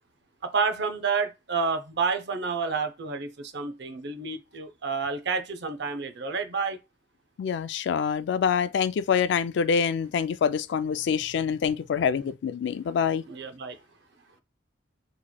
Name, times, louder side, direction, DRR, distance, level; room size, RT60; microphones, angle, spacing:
voice 1, 0.4-6.8 13.3-13.8, right 5 dB, 65° right, 0.6 m, -29 dB
voice 2, 7.4-13.2, left 7 dB, 70° left, 0.3 m, -26 dB
4.2 x 3.0 x 2.3 m
head